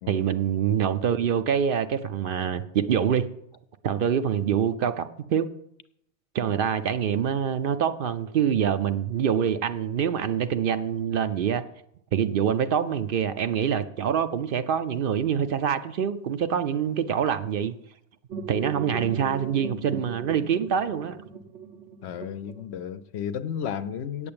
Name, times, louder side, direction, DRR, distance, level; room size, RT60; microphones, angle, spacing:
voice 1, 0.1-3.3 3.8-5.5 6.3-11.6 12.1-17.7 18.5-21.2, right 8 dB, 60° right, 0.7 m, -25 dB
sound 1, 18.3-23.1, right 6 dB, 85° right, 1.2 m, -38 dB
voice 2, 22.0-24.3, left 8 dB, 75° left, 0.9 m, -33 dB
8.5 x 7.0 x 8.7 m
omnidirectional pair, 1.1 m